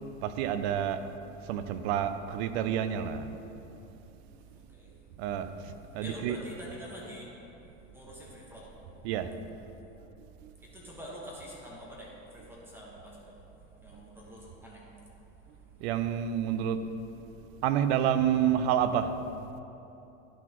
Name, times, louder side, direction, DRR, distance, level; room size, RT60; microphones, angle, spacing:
voice 1, 0.2-1.0 1.4-3.3 5.2-6.5 9.0-9.3 10.4-10.5 15.8-16.8 17.6-19.1, right 9 dB, 65° right, 10 dB, 0.6 m, -29 dB
voice 2, 4.5-4.9 6.0-7.3 7.9-8.7 10.6-13.3 13.8-14.8, equal, 5° right, -5 dB, 1.4 m, -46 dB
11.0 x 6.0 x 3.1 m, 2.9 s
supercardioid pair, 130°, 35 cm